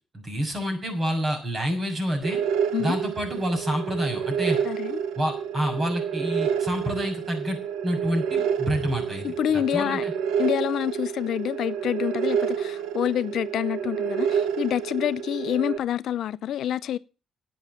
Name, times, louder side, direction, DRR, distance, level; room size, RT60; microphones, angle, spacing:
voice 1, 0.1-2.4 2.8-4.6 5.1-7.6 7.8-10.1, equal, 30° right, 6.4 m, -28 dB
sound 1, 2.2-15.8, right 8 dB, 90° right, 1.1 m, -29 dB
voice 2, 4.6-5.0 9.2-10.0 10.4-17.0, left 11 dB, 75° left, 0.5 m, -27 dB
11.0 x 8.8 x 7.4 m
cardioid pair, 90°, 0 cm